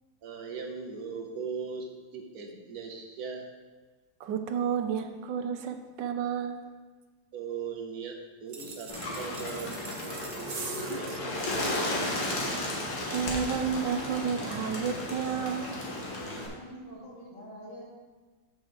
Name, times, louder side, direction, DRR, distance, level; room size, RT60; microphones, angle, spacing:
voice 1, 0.2-3.5 7.3-9.8 10.8-11.1, right 5 dB, 60° right, 3 dB, 1.2 m, -39 dB
voice 2, 4.2-6.6 10.6-11.2 12.7-12.8 13.0-15.8, right 7 dB, 80° right, 7 dB, 1.3 m, -31 dB
sound 1, 8.5-11.2, right 4 dB, 45° right, 0.9 m, -42 dB
Bird, 8.9-16.5, left 1 dB, 65° left, 1.9 m, -34 dB
voice 3, 16.2-17.9, equal, 80° left, -6 dB, 2.9 m, -46 dB
6.0 x 5.2 x 6.4 m, 1.3 s
omnidirectional pair, 1.9 m